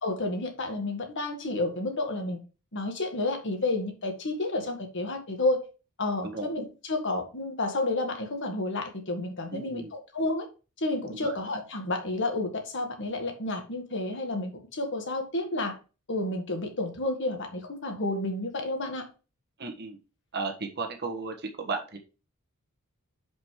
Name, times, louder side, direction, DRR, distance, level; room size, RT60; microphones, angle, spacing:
voice 1, 0.0-2.4 2.7-5.6 6.0-10.5 10.8-15.7 16.1-19.1, left 2 dB, 55° left, 1.7 m, -30 dB
voice 2, 9.5-9.9 11.2-11.3 19.6-20.0 20.3-22.0, right 3 dB, 50° right, 1.6 m, -34 dB
6.3 x 5.3 x 4.7 m
head